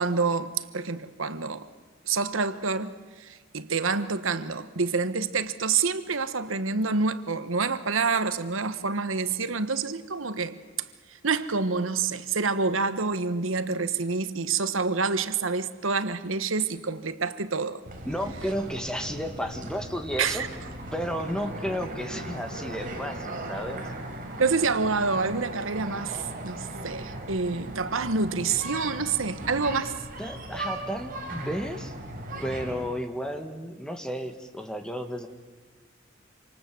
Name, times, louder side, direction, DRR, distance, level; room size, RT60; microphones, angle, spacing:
voice 1, 0.0-1.7 2.1-10.6 11.2-17.8 20.2-20.5 24.4-30.0, right 4 dB, 90° right, 1.3 m, -27 dB
sound 1, 17.8-32.9, right 1 dB, 45° right, 4.2 m, -38 dB
voice 2, 18.1-20.4 20.9-23.9 30.2-31.9 32.4-35.3, equal, 5° left, 2.0 m, -33 dB
27.0 x 26.0 x 7.8 m
head